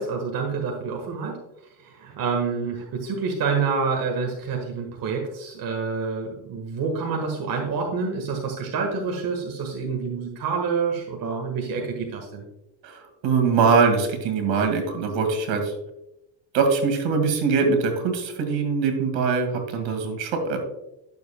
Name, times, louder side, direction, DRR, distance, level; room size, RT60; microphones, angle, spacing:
voice 1, 0.0-1.4 1.8-12.4, right 5 dB, 45° right, 2 dB, 1.6 m, -27 dB
voice 2, 12.8-15.7 16.5-20.6, right 5 dB, 65° right, 5 dB, 2.2 m, -22 dB
12.0 x 7.0 x 2.3 m, 0.86 s
cardioid pair, 110°, 48 cm